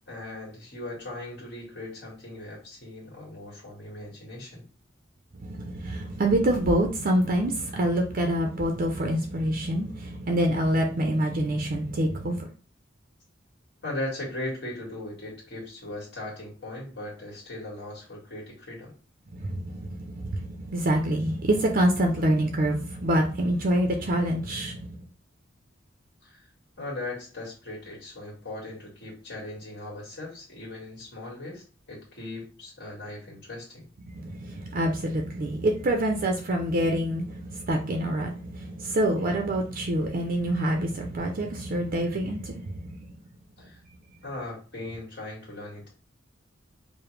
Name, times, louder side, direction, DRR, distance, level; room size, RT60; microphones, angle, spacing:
voice 1, 0.1-4.6 13.8-18.9 26.2-26.4 26.8-33.9 43.6-43.8 44.2-45.9, left 2 dB, 60° left, 1.6 m, -38 dB
voice 2, 5.3-12.5 19.3-24.9 34.1-43.0, right 1 dB, 50° right, 0.5 m, -26 dB
4.9 x 2.1 x 3.1 m
head